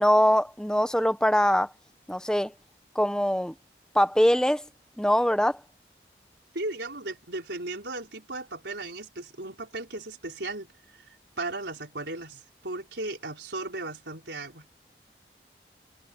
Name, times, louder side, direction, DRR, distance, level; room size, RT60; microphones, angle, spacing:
voice 1, 0.0-1.7 2.1-2.5 2.9-3.5 3.9-4.6 5.0-5.6, equal, 5° left, 0.8 m, -22 dB
voice 2, 6.5-11.0 11.4-14.7, right 2 dB, 85° right, 4.5 m, -36 dB
head